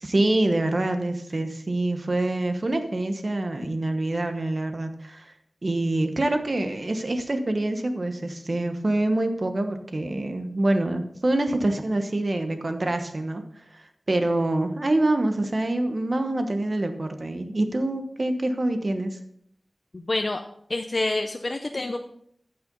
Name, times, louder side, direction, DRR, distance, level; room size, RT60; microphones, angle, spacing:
voice 1, 0.0-5.3 5.6-13.4 13.7-19.2, right 1 dB, 50° right, 7 dB, 1.1 m, -26 dB
voice 2, 19.9-20.4 20.7-22.0, left 2 dB, 50° left, 5 dB, 0.6 m, -27 dB
14.0 x 5.7 x 3.9 m, 0.67 s
wide cardioid pair, 70°, 0 cm